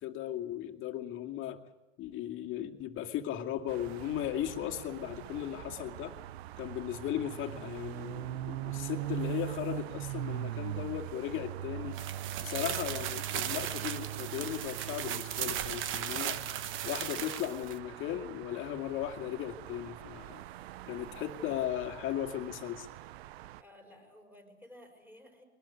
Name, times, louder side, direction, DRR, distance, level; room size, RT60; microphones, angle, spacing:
voice 1, 0.0-1.6 2.0-6.1 6.6-12.0 12.4-16.4 16.8-20.4 20.9-22.9, left 11 dB, 40° left, 3 dB, 2.2 m, -37 dB
sound 1, 3.7-23.6, right 14 dB, 70° right, 0.8 m, -42 dB
sound 2, 11.9-17.8, right 10 dB, 35° right, 1.3 m, -37 dB
voice 2, 12.4-12.9 21.0-21.5 23.6-25.4, equal, 5° right, 4 dB, 5.4 m, -56 dB
22.0 x 19.5 x 8.5 m, 1.0 s
hypercardioid pair, 120°, 33 cm